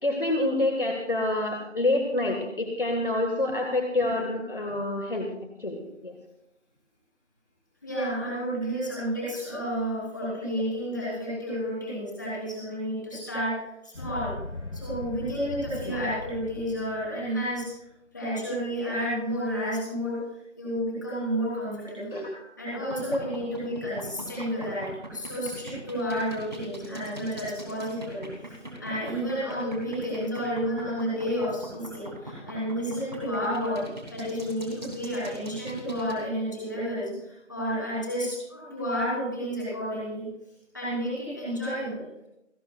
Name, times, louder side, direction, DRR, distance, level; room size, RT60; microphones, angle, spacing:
voice 1, 0.0-6.2 15.9-16.0 22.1-22.3, left 2 dB, 45° left, 2 dB, 1.7 m, -27 dB
voice 2, 7.8-13.5 13.8-14.3 14.7-17.7 18.1-20.2 20.6-22.2 22.6-40.2 40.7-42.3, equal, 15° left, -7 dB, 4.0 m, -31 dB
sound 1, 13.9-17.5, left 2 dB, 85° left, 2.2 m, -39 dB
sound 2, 22.7-36.2, right 1 dB, 35° right, 2.8 m, -41 dB
28.5 x 11.5 x 2.4 m, 0.86 s
figure-of-eight pair, 175°, 37 cm